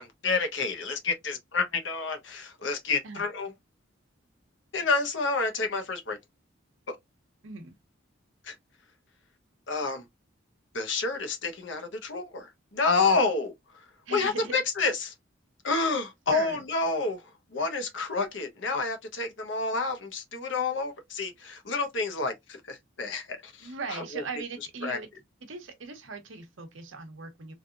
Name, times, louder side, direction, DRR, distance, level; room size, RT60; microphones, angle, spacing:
voice 1, 0.0-3.5 4.7-6.2 8.4-8.5 9.7-10.0 10.7-13.5 14.1-15.1 15.6-24.2 24.8-25.0, left 4 dB, 65° left, 0.8 m, -29 dB
voice 2, 7.4-7.8 14.1-14.5 16.3-16.7 23.6-25.1 25.4-27.5, right 4 dB, 75° right, 0.9 m, -39 dB
3.3 x 2.7 x 2.3 m
head